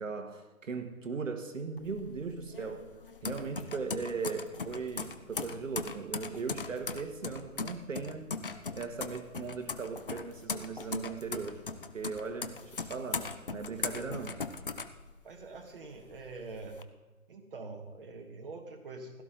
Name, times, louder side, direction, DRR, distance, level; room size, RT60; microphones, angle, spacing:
voice 1, 0.0-2.9 3.2-8.3 8.7-14.4, right 4 dB, 60° right, 6 dB, 1.6 m, -38 dB
sound 1, 1.8-15.6 16.0-16.8, left 4 dB, 40° left, 0.6 m, -39 dB
voice 2, 15.2-16.8 17.3-19.2, right 3 dB, 40° right, 3 dB, 1.5 m, -45 dB
16.0 x 13.0 x 3.9 m, 1.2 s
hypercardioid pair, 160°, 44 cm